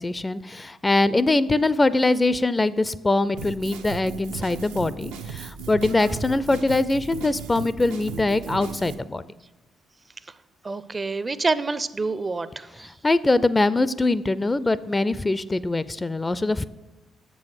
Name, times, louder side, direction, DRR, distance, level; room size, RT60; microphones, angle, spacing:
voice 1, 0.0-9.2 13.0-16.6, left 2 dB, 25° left, 17 dB, 0.4 m, -23 dB
Drum kit, 3.4-8.9, right 6 dB, 85° right, 0.7 m, -36 dB
voice 2, 10.6-12.9, right 3 dB, 30° right, 16 dB, 0.5 m, -27 dB
7.1 x 6.2 x 6.6 m, 1.0 s
hypercardioid pair, 50°, 0 cm